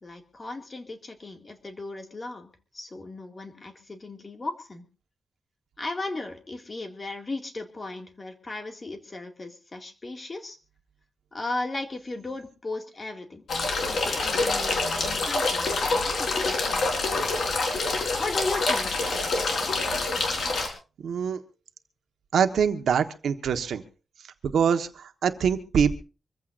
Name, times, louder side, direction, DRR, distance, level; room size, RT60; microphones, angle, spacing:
voice 1, 0.0-4.8 5.8-10.6 11.3-13.4 13.9-17.0 18.2-19.4, left 2 dB, 25° left, 4 dB, 2.2 m, -36 dB
sound 1, 13.5-20.7, left 3 dB, 60° left, 4.3 m, -26 dB
voice 2, 21.0-21.4 22.3-23.8 24.4-26.0, right 7 dB, 85° right, 8 dB, 1.3 m, -24 dB
25.0 x 15.0 x 2.6 m, 0.34 s
wide cardioid pair, 150°, 0 cm